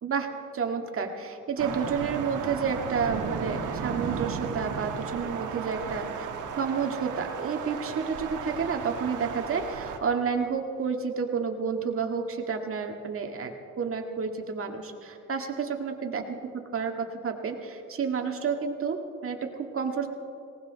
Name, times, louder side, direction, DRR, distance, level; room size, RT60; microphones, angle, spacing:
voice 1, 0.0-6.3 6.6-20.1, right 5 dB, 45° right, 3 dB, 1.9 m, -30 dB
sound 1, 1.6-10.0, right 6 dB, 80° right, 1.5 m, -34 dB
19.0 x 18.5 x 4.1 m, 2.4 s
cardioid pair, 90°, 30 cm